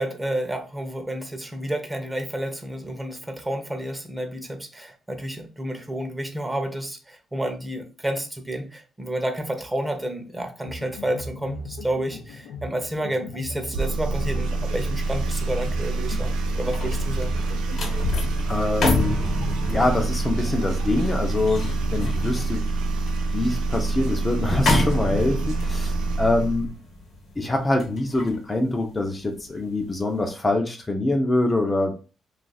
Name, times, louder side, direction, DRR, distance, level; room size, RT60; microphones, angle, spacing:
voice 1, 0.0-17.3, right 1 dB, 10° right, 5 dB, 0.7 m, -30 dB
sound 1, 10.6-22.6, left 2 dB, 85° left, 0.4 m, -39 dB
sound 2, 13.7-26.7, right 3 dB, 90° right, 0.5 m, -26 dB
sound 3, 16.2-29.6 30.0-30.2, left 2 dB, 65° left, 1.1 m, -30 dB
voice 2, 18.5-19.2 19.7-22.6 23.3-26.7 27.4-32.0, left 2 dB, 25° left, 3 dB, 0.6 m, -24 dB
2.5 x 2.4 x 3.9 m, 0.34 s
cardioid pair, 90°, 0 cm